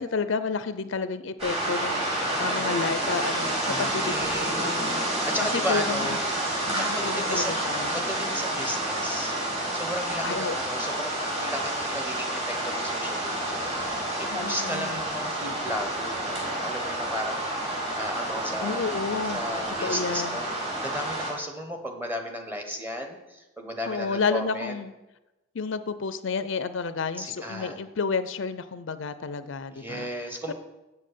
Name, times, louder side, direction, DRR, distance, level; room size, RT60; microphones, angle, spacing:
voice 1, 0.0-5.3 5.5-6.2 6.7-7.9 10.2-10.5 14.3-15.0 18.6-19.4 19.8-20.4 23.9-24.9 25.5-30.1 30.5-30.6, left 5 dB, 65° left, 12 dB, 0.5 m, -31 dB
sound 1, 1.4-21.3, right 1 dB, 30° right, 3.7 m, -29 dB
voice 2, 3.6-4.7 5.2-6.2 6.8-7.6 7.9-9.3 9.7-19.0 19.3-20.5 20.8-24.7 27.2-27.8 29.7-30.5, equal, 10° right, 4 dB, 1.2 m, -34 dB
8.3 x 7.5 x 6.8 m, 1.0 s
head